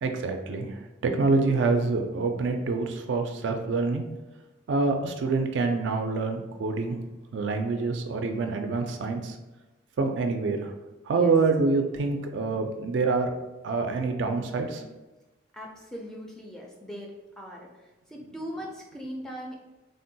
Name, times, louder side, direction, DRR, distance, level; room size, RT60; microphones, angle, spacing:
voice 1, 0.0-0.7 1.0-4.0 4.7-7.0 7.3-9.3 10.0-10.6 11.1-13.3 13.6-14.8, right 3 dB, 75° right, 5 dB, 0.4 m, -26 dB
voice 2, 11.1-11.5 14.7-14.9 15.5-19.6, equal, 5° left, -1 dB, 0.3 m, -40 dB
3.5 x 2.2 x 2.6 m, 1.1 s
head